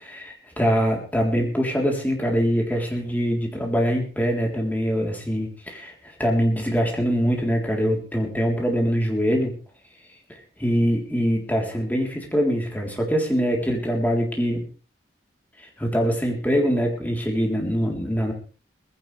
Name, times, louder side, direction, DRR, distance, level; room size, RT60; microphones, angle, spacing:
voice 1, 0.1-9.5 10.6-14.7 15.6-18.3, equal, 10° left, 0 dB, 3.7 m, -23 dB
19.0 x 16.0 x 3.4 m, 0.37 s
head